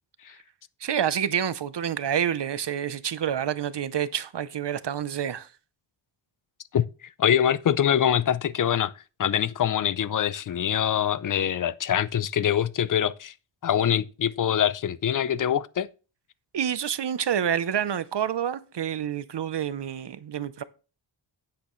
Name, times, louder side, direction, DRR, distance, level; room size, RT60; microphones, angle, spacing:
voice 1, 0.8-5.5 16.5-20.6, right 9 dB, 60° right, 0.7 m, -28 dB
voice 2, 6.7-8.9 9.2-13.3 13.6-15.9, left 9 dB, 45° left, 0.5 m, -24 dB
10.0 x 8.7 x 3.1 m
wide cardioid pair, 115°, 48 cm